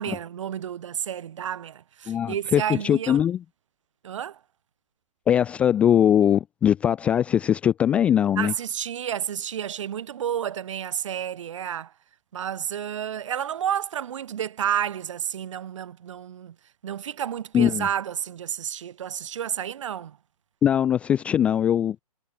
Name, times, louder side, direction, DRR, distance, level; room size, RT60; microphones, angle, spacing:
voice 1, 0.0-3.2 4.0-4.4 8.4-11.9 12.3-16.6 16.8-20.2, right 9 dB, 55° right, 1.8 m, -30 dB
voice 2, 2.1-3.4 5.3-8.5 17.5-17.9 20.6-22.0, left 9 dB, 5° left, 0.4 m, -21 dB
hypercardioid pair, 150°, 19 cm